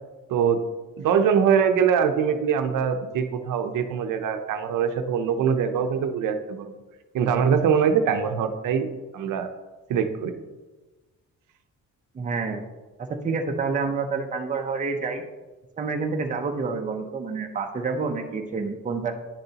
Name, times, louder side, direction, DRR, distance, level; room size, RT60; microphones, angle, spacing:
voice 1, 1.0-6.7 7.1-9.5 9.9-10.3, right 7 dB, 80° right, 7 dB, 0.8 m, -23 dB
voice 2, 12.1-12.6 13.0-15.2 15.8-19.1, right 4 dB, 25° right, 3 dB, 0.7 m, -28 dB
9.9 x 6.7 x 2.9 m, 1.2 s
cardioid pair, 150°, 31 cm